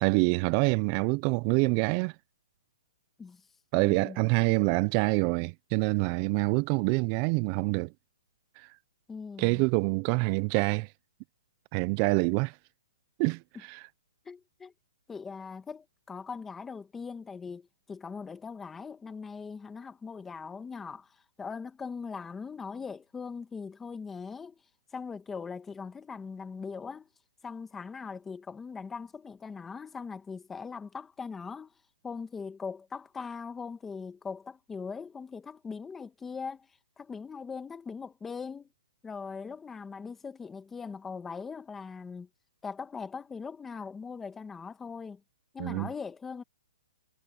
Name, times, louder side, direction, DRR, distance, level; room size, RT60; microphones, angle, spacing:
voice 1, 0.0-2.1 3.7-7.9 8.6-8.7 9.4-10.9 11.7-12.5 13.2-13.4 13.7-13.8 45.6-45.9, right 29 dB, 25° right, 0.3 m, -26 dB
voice 2, 3.7-4.3 9.1-9.7 14.2-14.7 15.1-24.6 24.9-27.1 27.4-31.7 32.0-36.7 37.0-38.7 39.0-42.3 42.6-45.2 45.5-46.4, left 5 dB, 10° left, 1.4 m, -40 dB
hypercardioid pair, 165°, 3 cm